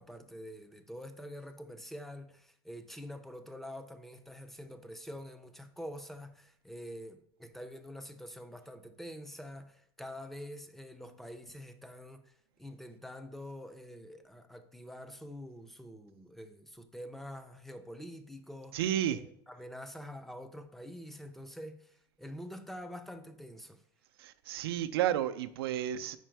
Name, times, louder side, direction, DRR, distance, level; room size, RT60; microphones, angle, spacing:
voice 1, 0.0-18.8 19.1-23.8, equal, ahead, 0.5 m, -46 dB
voice 2, 18.7-19.2 24.2-26.2, right 11 dB, 90° right, 0.4 m, -32 dB
5.0 x 4.5 x 4.5 m
supercardioid pair, 115°, 12 cm